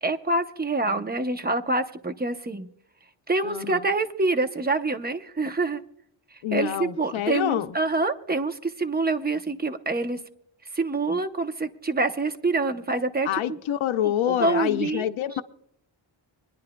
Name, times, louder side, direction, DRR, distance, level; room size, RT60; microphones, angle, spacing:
voice 1, 0.0-2.7 3.3-5.8 6.3-10.2 10.7-13.6 14.0-15.1, right 3 dB, 20° right, 0.7 m, -26 dB
voice 2, 3.4-3.8 6.4-7.7 13.2-15.4, left 11 dB, 85° left, 0.7 m, -27 dB
26.0 x 10.5 x 2.2 m
wide cardioid pair, 120°, 47 cm